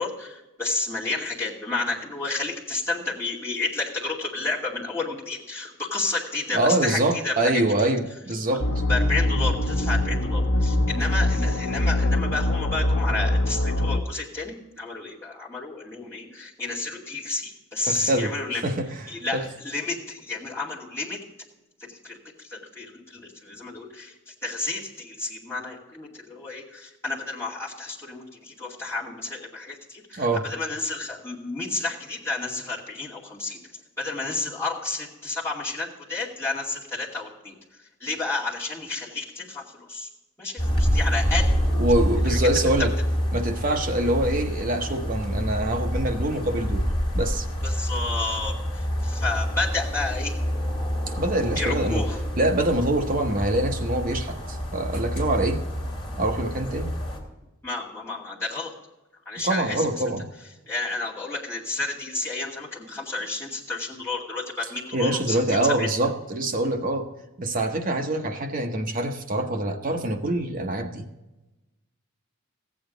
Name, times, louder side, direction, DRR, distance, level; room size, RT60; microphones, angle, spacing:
voice 1, 0.0-7.5 8.9-18.6 19.1-21.2 21.8-22.2 22.4-33.6 34.0-37.5 38.0-40.1 40.4-41.5 42.3-42.4 47.6-50.4 51.6-52.2 57.6-58.7 59.3-59.9 60.7-65.9, left 3 dB, 10° left, -7 dB, 2.5 m, -31 dB
voice 2, 6.5-8.7 17.8-18.3 18.6-19.4 30.1-30.5 41.7-42.9 43.3-46.8 47.1-47.5 51.2-52.0 52.4-55.6 56.2-56.9 59.4-60.3 64.9-67.1 67.4-71.1, right 1 dB, 40° right, 5 dB, 0.9 m, -25 dB
sound 1, 8.6-14.0, left 1 dB, 55° left, 0.8 m, -23 dB
sound 2, 40.6-57.2, equal, 25° left, 2.8 m, -27 dB
15.0 x 8.6 x 3.9 m, 1.0 s
head